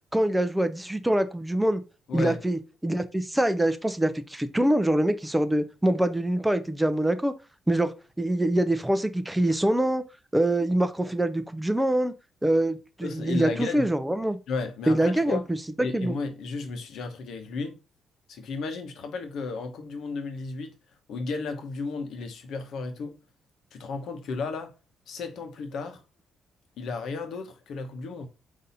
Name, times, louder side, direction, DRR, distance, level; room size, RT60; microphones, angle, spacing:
voice 1, 0.1-1.8 2.1-7.3 7.7-10.0 10.3-12.1 12.4-14.4 14.9-15.4 15.9-16.2, right 1 dB, 5° right, 0.5 m, -24 dB
voice 2, 2.1-2.4 13.0-13.9 14.5-15.5 15.8-17.8 18.3-20.7 21.1-23.2 23.7-24.7 25.1-26.0 26.8-28.3, left 4 dB, 70° left, 0.9 m, -33 dB
4.0 x 2.7 x 3.9 m
cardioid pair, 90°, 0 cm